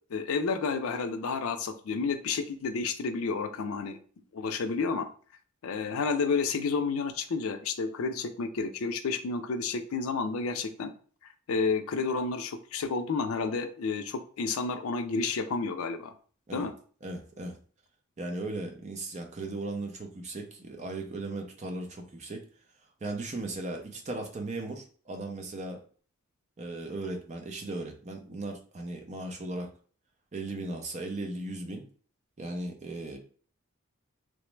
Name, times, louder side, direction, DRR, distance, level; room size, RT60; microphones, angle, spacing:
voice 1, 0.1-4.0 4.3-5.1 5.6-10.9 11.5-16.1 16.5-16.7, left 4 dB, 70° left, 8 dB, 0.4 m, -30 dB
voice 2, 17.0-17.6 18.2-22.4 23.0-25.8 26.6-29.7 30.3-31.9 32.4-33.2, right 2 dB, 35° right, 3 dB, 0.5 m, -37 dB
3.1 x 2.0 x 3.1 m, 0.43 s
head